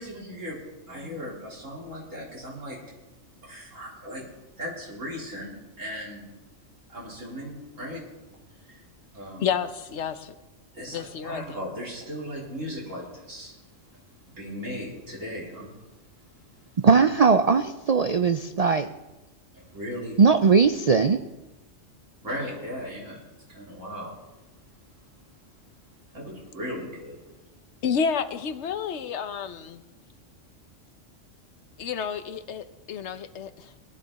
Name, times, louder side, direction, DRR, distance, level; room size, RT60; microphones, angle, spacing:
voice 1, 0.0-0.6 0.9-2.8 3.4-4.3 4.6-5.5 5.8-6.3 6.9-8.0 8.6-8.8 9.1-9.5 10.7-13.5 14.4-15.7 19.7-20.3 22.2-24.2 26.1-27.2, equal, 90° right, -4 dB, 4.5 m, -37 dB
voice 2, 9.4-10.3 10.9-11.6 27.8-29.8 31.8-33.7, left 7 dB, 65° left, 11 dB, 1.1 m, -30 dB
voice 3, 16.8-18.9 20.2-21.2, right 5 dB, 70° right, 8 dB, 0.3 m, -19 dB
19.0 x 12.0 x 4.1 m, 1.1 s
omnidirectional pair, 1.3 m